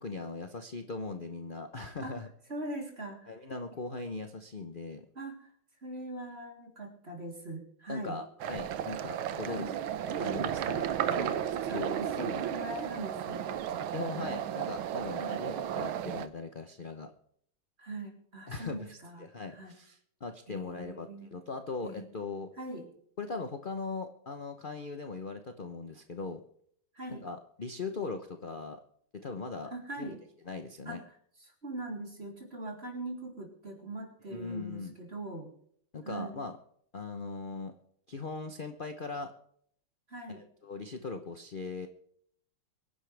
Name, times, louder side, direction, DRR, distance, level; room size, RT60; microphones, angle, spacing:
voice 1, 0.0-2.3 3.3-5.0 7.9-9.7 10.2-12.4 13.9-17.1 18.5-22.5 23.2-26.4 27.1-28.8 29.1-29.7 30.0-30.1 30.5-31.0 34.3-34.9 35.9-36.5 36.9-37.8 38.1-39.3 40.3-41.9, left 4 dB, 45° left, 6 dB, 0.6 m, -40 dB
voice 2, 2.5-3.3 5.2-5.5 5.8-8.2 9.4-9.7 11.1-11.4 11.7-14.8 15.1-15.5 17.8-19.7 20.5-21.3 21.8-22.1 22.6-22.9 26.9-27.3 29.7-30.2 30.9-31.0 31.4-35.5 36.0-36.4 40.1-40.4, right 1 dB, 30° right, 1 dB, 3.7 m, -42 dB
sound 1, 8.4-16.3, right 10 dB, 75° right, 1.6 m, -34 dB
24.0 x 11.0 x 3.4 m, 0.65 s
omnidirectional pair, 2.3 m